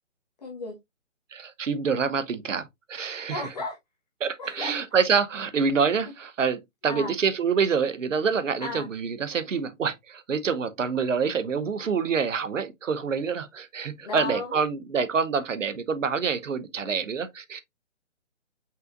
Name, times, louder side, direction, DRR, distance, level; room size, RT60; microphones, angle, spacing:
voice 1, 0.4-0.8 3.3-3.8 4.4-4.7 6.0-6.1 6.8-7.1 8.6-8.9 14.0-14.6, left 2 dB, 30° left, 1.3 m, -34 dB
voice 2, 1.3-3.4 4.2-17.6, right 5 dB, 70° right, 0.8 m, -26 dB
5.5 x 3.8 x 2.5 m
hypercardioid pair, 165°, 39 cm